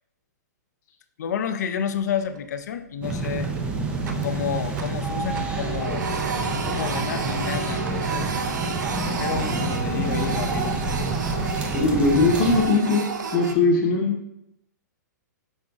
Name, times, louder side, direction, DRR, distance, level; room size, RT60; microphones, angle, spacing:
voice 1, 1.2-3.5 4.2-6.1 6.5-8.4 9.1-10.8, left 7 dB, 70° left, 9 dB, 0.4 m, -30 dB
Printer, 1.9-2.6 2.9-3.1 3.5-5.1 5.3-13.5, right 5 dB, 80° right, 0.5 m, -31 dB
sound 1, 3.0-12.7, right 3 dB, 10° right, 0.4 m, -28 dB
voice 2, 11.7-13.0 13.3-14.2, left 3 dB, 35° left, 0 dB, 0.8 m, -20 dB
5.3 x 3.6 x 2.3 m, 0.80 s
hypercardioid pair, 135°, 10 cm